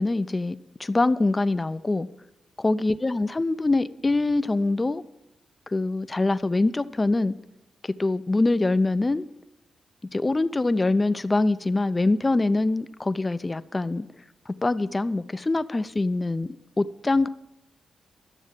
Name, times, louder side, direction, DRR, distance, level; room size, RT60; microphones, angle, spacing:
voice 1, 0.0-2.1 2.6-5.0 5.7-7.4 7.8-9.2 10.1-14.1 14.5-17.3, left 2 dB, 25° left, 0.5 m, -24 dB
12.0 x 7.0 x 7.4 m
cardioid pair, 70°, 0 cm